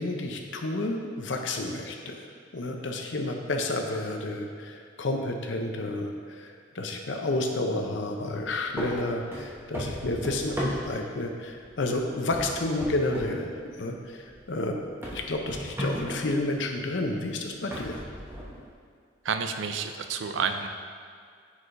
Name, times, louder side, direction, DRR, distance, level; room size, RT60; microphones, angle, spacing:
voice 1, 0.0-2.3 2.5-14.8 15.1-18.0, left 2 dB, 65° left, 3 dB, 0.7 m, -30 dB
sound 1, 8.2-8.4 8.8-11.2 11.7-12.0 12.3-13.4 13.7-13.8 14.3-14.4 15.0-16.4 17.1-17.2 17.7-18.7, equal, 10° right, 0.9 m, -35 dB
voice 2, 19.2-20.7, right 6 dB, 75° right, 7 dB, 0.4 m, -29 dB
9.8 x 4.9 x 2.6 m, 2.1 s
head